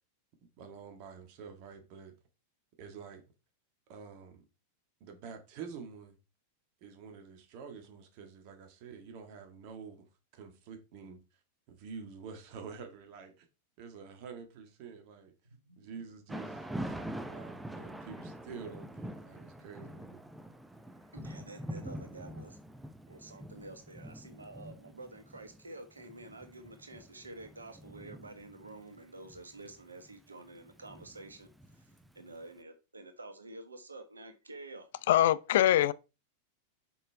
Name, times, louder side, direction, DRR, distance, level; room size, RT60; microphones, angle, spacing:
voice 1, 0.6-2.1 2.8-3.2 3.9-4.4 5.0-6.2 6.8-11.2 11.7-13.5 13.8-15.3 15.8-20.2, right 6 dB, 45° right, 1.7 m, -48 dB
voice 2, 15.5-16.1 19.6-19.7 21.1-22.6 23.1-31.5 31.7-31.9 32.1-34.9, right 2 dB, 75° right, 1.4 m, -49 dB
Thunder / Rain, 16.3-32.3, right 1 dB, 5° right, 0.7 m, -45 dB
voice 3, 35.1-35.9, left 12 dB, 55° left, 0.4 m, -23 dB
7.2 x 5.6 x 3.4 m
figure-of-eight pair, 90°, 0 cm